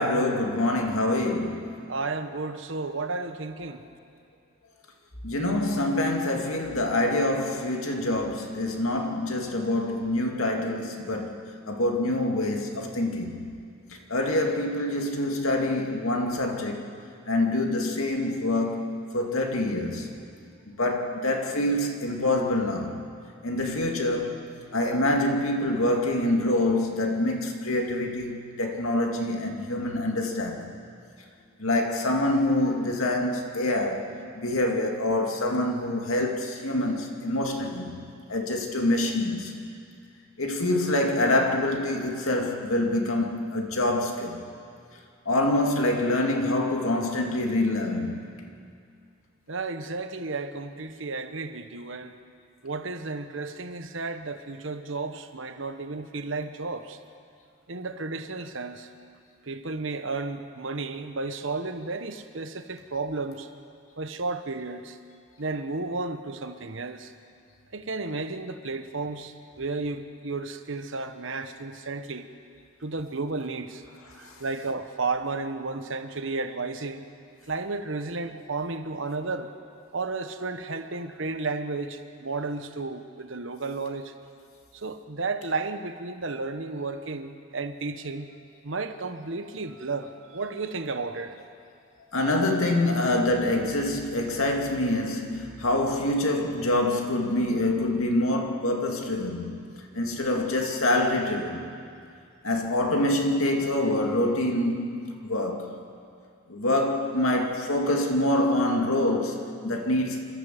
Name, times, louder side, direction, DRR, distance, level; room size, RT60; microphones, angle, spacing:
voice 1, 0.0-1.7 5.2-11.4 11.7-13.4 14.1-16.8 17.3-20.1 20.8-23.0 23.4-24.4 24.7-30.7 31.6-38.0 38.3-39.5 40.4-44.4 45.3-48.2 74.2-74.3 92.1-99.6 99.9-101.6 102.4-105.0 105.2-105.7 106.5-110.2, left 1 dB, 80° left, 2 dB, 2.4 m, -26 dB
voice 2, 1.9-3.8 49.5-52.1 52.6-57.0 57.7-58.9 59.5-63.5 64.0-65.0 65.4-67.1 67.7-72.3 72.8-73.8 74.1-77.1 77.5-79.5 79.9-84.1 84.7-88.3 88.6-91.4, right 3 dB, 60° right, 9 dB, 1.1 m, -33 dB
27.5 x 13.0 x 7.7 m, 2.3 s
head